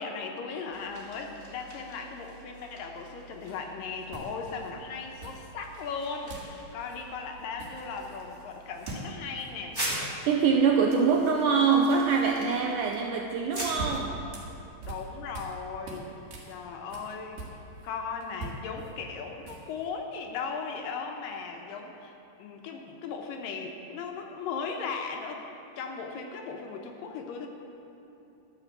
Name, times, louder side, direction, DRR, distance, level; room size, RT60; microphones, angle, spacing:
voice 1, 0.0-9.8 14.8-16.1 16.5-17.4 17.8-25.4 25.8-27.5, left 5 dB, 75° left, 3 dB, 2.3 m, -37 dB
sound 1, 0.7-14.1, right 1 dB, 5° right, 2.2 m, -42 dB
sound 2, 3.4-3.6 4.1-4.7 5.2-5.8 6.3-6.6 6.8-7.0 7.3-8.2 8.8-9.1 9.4-9.5 9.8-10.5 13.3-15.6 15.8-17.9 18.2-19.9, right 2 dB, 65° right, 3.0 m, -42 dB
voice 2, 10.3-14.2, right 5 dB, 80° right, 1 dB, 1.9 m, -24 dB
12.5 x 6.2 x 8.0 m, 2.9 s
omnidirectional pair, 4.3 m